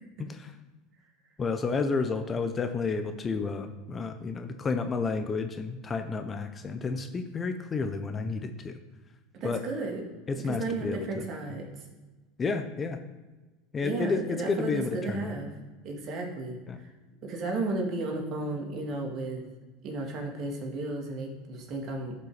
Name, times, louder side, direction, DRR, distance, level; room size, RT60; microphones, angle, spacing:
voice 1, 1.4-8.8 9.4-9.6 10.3-11.3 12.4-13.0 13.7-15.2 16.7-16.8, left 4 dB, 25° left, 8 dB, 0.7 m, -31 dB
voice 2, 9.4-10.1 10.3-11.7 13.8-15.5 15.8-16.9 17.2-19.4 19.8-22.1, right 2 dB, 50° right, 1 dB, 2.1 m, -34 dB
10.5 x 5.5 x 5.0 m, 1.2 s
hypercardioid pair, 95°, 0 cm